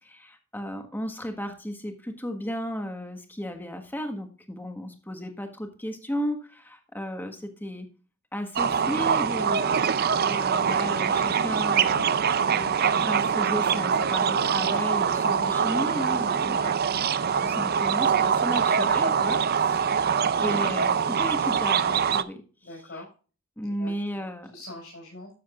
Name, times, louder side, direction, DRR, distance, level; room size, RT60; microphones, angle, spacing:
voice 1, 0.0-7.9 8.3-12.1 12.5-16.6 17.3-20.1 20.4-22.4 23.6-24.5, equal, 10° left, 5 dB, 1.4 m, -34 dB
sound 1, 8.6-22.2, right 7 dB, 45° right, 0.5 m, -24 dB
voice 2, 20.0-20.3 22.6-23.1 23.6-25.3, left 1 dB, 60° left, -4 dB, 5.6 m, -44 dB
13.0 x 7.8 x 2.5 m, 0.35 s
head